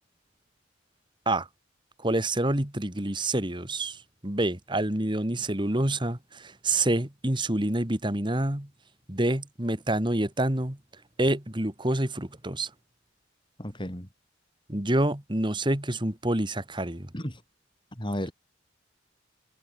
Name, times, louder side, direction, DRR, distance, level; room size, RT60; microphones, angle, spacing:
voice 1, 2.0-8.7 9.1-10.8 11.2-12.7 14.7-17.1, right 1 dB, 25° right, 2.0 m, -27 dB
voice 2, 13.6-14.1 17.1-17.4 17.9-18.3, equal, 25° left, 7.7 m, -33 dB
head